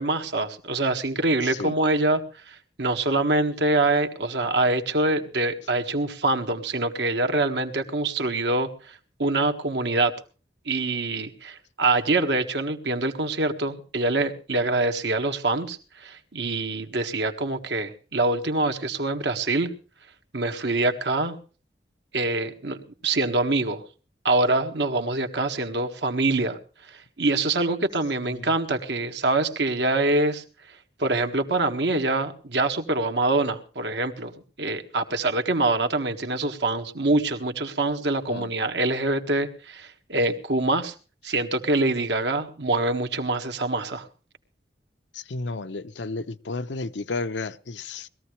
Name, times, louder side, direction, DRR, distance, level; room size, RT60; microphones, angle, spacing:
voice 1, 0.0-2.2 2.5-8.9 9.2-10.1 10.7-19.7 20.3-21.4 22.1-22.8 23.0-23.8 24.2-26.6 27.2-30.4 31.0-34.3 34.6-40.9 41.2-44.1, right 2 dB, 80° right, 1.7 m, -25 dB
voice 2, 1.4-1.8 28.2-28.5 38.3-38.5 45.1-48.1, left 3 dB, 85° left, 0.7 m, -32 dB
20.5 x 14.5 x 3.2 m
head